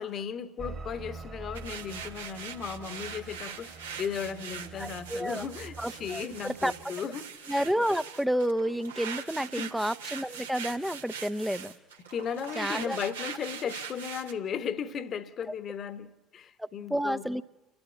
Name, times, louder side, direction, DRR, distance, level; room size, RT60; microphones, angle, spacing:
voice 1, 0.0-7.3 9.5-9.7 12.1-17.4, left 7 dB, 40° left, 1.2 m, -36 dB
sound 1, 0.6-6.9, right 4 dB, 30° right, 1.7 m, -46 dB
sound 2, 1.5-14.3, right 6 dB, 75° right, 1.4 m, -42 dB
voice 2, 4.8-5.5 5.8-6.7 7.5-11.7 12.6-13.0 16.6-17.4, equal, ahead, 0.7 m, -30 dB
30.0 x 11.5 x 8.4 m
figure-of-eight pair, 60°, 0 cm